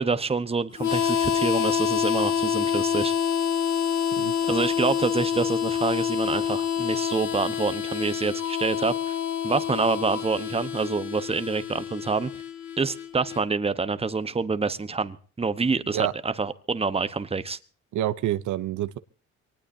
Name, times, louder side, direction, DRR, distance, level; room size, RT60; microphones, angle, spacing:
voice 1, 0.0-3.1 4.5-9.2 9.4-12.3 12.8-17.6, right 4 dB, 20° right, 1.0 m, -27 dB
Harmonica, 0.8-13.4, left 8 dB, 70° left, 1.8 m, -27 dB
voice 2, 17.9-19.0, right 13 dB, 75° right, 0.8 m, -27 dB
24.0 x 19.5 x 2.7 m
cardioid pair, 90°, 30 cm